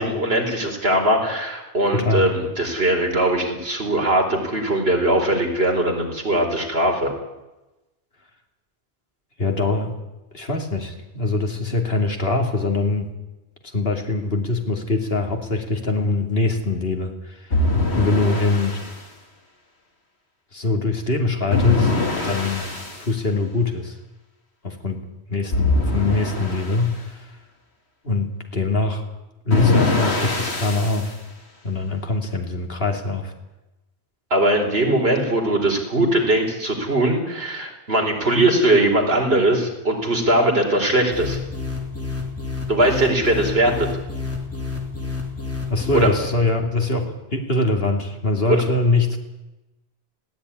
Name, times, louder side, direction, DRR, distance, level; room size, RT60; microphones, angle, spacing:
voice 1, 0.0-7.1 34.3-41.4 42.7-43.7 45.9-46.1 48.5-48.6, right 1 dB, 70° right, 2 dB, 4.6 m, -20 dB
voice 2, 1.9-2.3 9.4-10.0 10.3-13.1 13.7-18.8 20.5-21.9 22.2-22.7 23.0-24.0 24.6-25.0 25.3-27.3 28.0-29.0 29.4-31.2 31.6-33.3 45.7-49.2, left 3 dB, 65° left, 3 dB, 3.2 m, -23 dB
sound 1, 17.5-18.9 21.5-23.0 25.5-26.9 29.5-31.1, left 3 dB, 80° left, 3.2 m, -22 dB
sound 2, 41.1-46.3, left 4 dB, 15° left, 4.0 m, -29 dB
20.5 x 16.0 x 9.9 m, 1.0 s
omnidirectional pair, 1.1 m